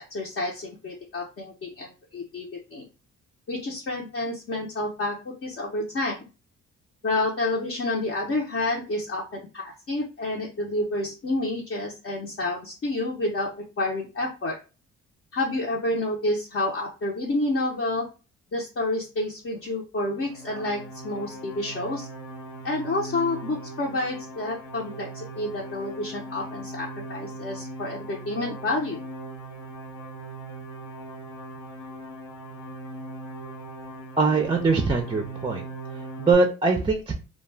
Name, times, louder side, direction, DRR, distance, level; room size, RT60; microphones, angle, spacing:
voice 1, 0.0-2.8 3.5-6.2 7.0-13.5 13.8-14.6 15.3-18.1 18.5-22.1 22.6-29.0, left 2 dB, 45° left, -3 dB, 0.7 m, -29 dB
sound 1, 20.1-36.3, right 2 dB, 90° left, 0.7 m, -39 dB
voice 2, 34.2-35.6 35.9-37.1, right 4 dB, 15° right, 3 dB, 0.4 m, -22 dB
2.2 x 2.2 x 3.2 m, 0.31 s
cardioid pair, 90°, 30 cm